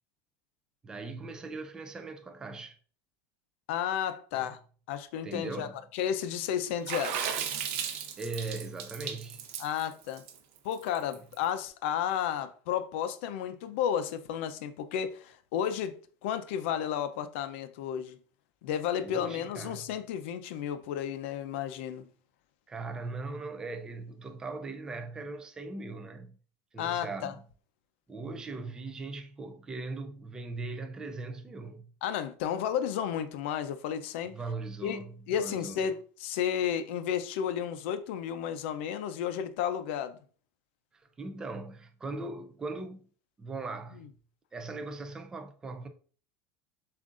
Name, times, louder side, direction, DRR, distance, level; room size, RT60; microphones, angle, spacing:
voice 1, 0.8-2.8 4.3-4.5 5.2-5.7 8.2-9.4 19.0-19.9 22.7-26.4 26.7-27.4 28.1-31.9 34.2-35.8 40.9-43.1 43.4-44.0 44.5-45.9, right 3 dB, 10° right, 0.4 m, -39 dB
voice 2, 3.7-4.6 4.9-7.3 9.6-10.2 10.6-16.0 16.2-18.2 18.6-22.1 26.8-27.3 32.0-34.3 34.8-35.0 35.3-40.2, left 9 dB, 75° left, 0.5 m, -32 dB
Water / Splash splatter, 6.9-11.3, right 8 dB, 60° right, 0.7 m, -35 dB
7.2 x 2.5 x 2.5 m
cardioid pair, 165°, 7 cm